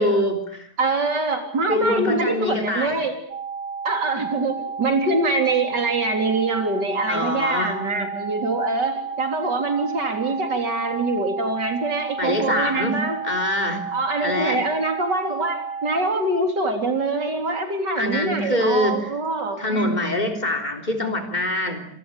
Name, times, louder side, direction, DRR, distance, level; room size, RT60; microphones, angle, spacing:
voice 1, 0.0-0.7 1.7-3.0 7.1-7.8 12.2-13.9 14.2-14.6 18.0-19.1 19.6-21.8, left 1 dB, 25° left, 5 dB, 3.7 m, -24 dB
voice 2, 0.8-3.2 3.8-13.2 13.9-19.9, right 3 dB, 80° right, 5 dB, 4.3 m, -24 dB
sound 1, 3.3-16.1, right 5 dB, 40° right, 1.5 m, -32 dB
27.5 x 19.5 x 8.3 m, 0.64 s
omnidirectional pair, 1.8 m